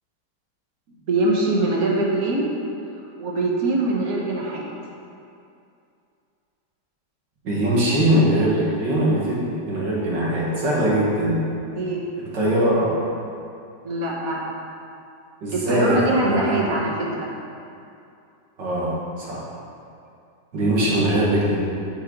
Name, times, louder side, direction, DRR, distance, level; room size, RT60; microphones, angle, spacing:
voice 1, 1.1-2.5 3.0-4.7 11.7-12.0 13.8-14.5 15.5-17.3, right 2 dB, 55° right, -2 dB, 1.5 m, -23 dB
voice 2, 7.4-11.4 12.3-13.0 15.4-16.7 18.6-19.5 20.5-21.6, right 1 dB, 85° right, -6 dB, 2.5 m, -21 dB
9.8 x 6.3 x 4.0 m, 2.5 s
omnidirectional pair, 1.9 m